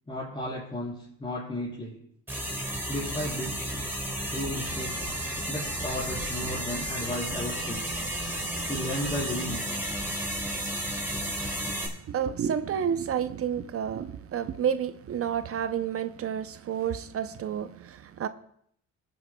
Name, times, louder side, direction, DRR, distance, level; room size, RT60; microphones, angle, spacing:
voice 1, 0.1-2.0 2.9-3.7 4.3-5.2 5.5-7.8 8.7-9.6, left 1 dB, 20° left, 3.8 m, -34 dB
sound 1, 2.3-11.9, right 1 dB, 5° right, 3.6 m, -32 dB
voice 2, 11.7-18.3, right 8 dB, 50° right, 0.6 m, -30 dB
22.5 x 9.3 x 2.2 m
cardioid pair, 90°, 30 cm